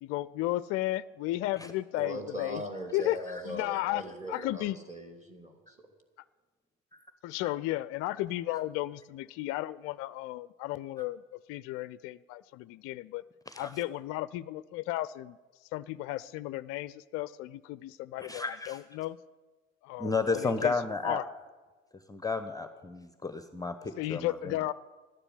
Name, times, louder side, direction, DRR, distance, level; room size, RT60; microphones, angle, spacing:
voice 1, 0.0-2.6 2.9-3.2 3.4-4.0 4.3-4.8 7.2-11.2 11.5-13.2 13.6-15.4 15.7-19.2 19.8-20.7 21.0-21.3 24.0-24.7, left 16 dB, 40° left, 18 dB, 0.4 m, -34 dB
voice 2, 2.0-5.9, equal, 20° right, 3 dB, 3.0 m, -40 dB
voice 3, 18.3-18.8 20.0-21.2 22.1-24.6, left 4 dB, 10° left, 10 dB, 0.8 m, -32 dB
12.0 x 9.9 x 9.7 m, 1.3 s
figure-of-eight pair, 65°, 36 cm